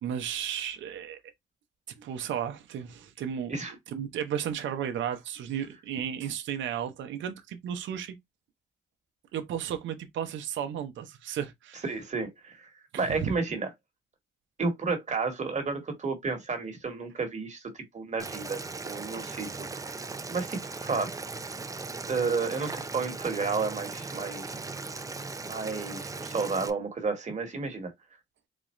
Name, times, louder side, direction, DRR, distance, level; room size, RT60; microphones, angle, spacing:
voice 1, 0.0-1.2 2.0-3.6 3.9-8.1 9.3-11.8 12.9-13.3, right 9 dB, 70° right, 0.7 m, -34 dB
voice 2, 11.8-12.7 13.0-13.7 14.6-19.5 19.7-19.9 20.3-21.1 22.1-24.6 25.4-27.9, right 4 dB, 35° right, 1.5 m, -31 dB
Boiling, 18.2-26.7, right 3 dB, 15° right, 0.5 m, -38 dB
4.1 x 2.3 x 3.1 m
cardioid pair, 90°, 20 cm